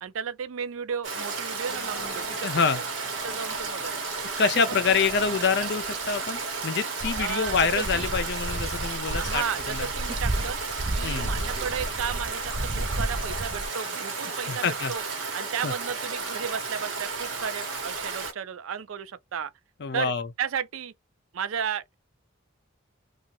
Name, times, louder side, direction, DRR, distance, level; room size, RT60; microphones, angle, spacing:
voice 1, 0.0-2.8 3.2-4.0 4.4-5.1 5.6-5.7 7.2-8.1 9.1-10.6 11.0-15.0 15.3-19.5 19.9-20.1 20.4-20.9 21.3-22.0, right 7 dB, 85° right, 0.4 m, -34 dB
Stream, 1.0-18.3, right 4 dB, 70° right, 1.1 m, -33 dB
sound 1, 1.7-10.3, equal, 15° left, 0.9 m, -46 dB
voice 2, 2.4-2.8 4.4-9.9 11.0-11.3 14.5-14.9 15.6-15.7 19.8-20.3, left 5 dB, 55° left, 0.5 m, -26 dB
sound 2, 7.0-13.7, right 1 dB, 20° right, 0.4 m, -32 dB
2.7 x 2.4 x 2.9 m
head